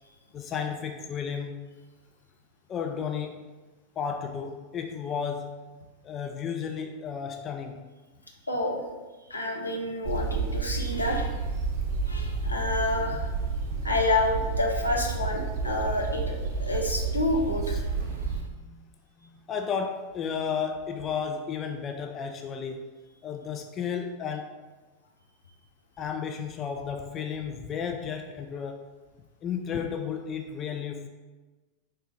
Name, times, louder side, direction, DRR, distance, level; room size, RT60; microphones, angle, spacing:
voice 1, 0.3-1.7 2.7-3.5 4.0-5.6 6.0-7.8 12.9-13.2 18.0-22.9 23.2-24.6 26.0-28.8 29.4-31.1, left 6 dB, 25° left, 5 dB, 0.3 m, -33 dB
voice 2, 8.5-8.8 9.3-11.4 12.1-13.3 13.8-18.3, left 2 dB, 80° left, 0 dB, 0.6 m, -29 dB
sound 1, 10.0-18.4, right 4 dB, 45° right, 0.7 m, -30 dB
4.4 x 3.3 x 3.1 m, 1.2 s
figure-of-eight pair, 90°, 0 cm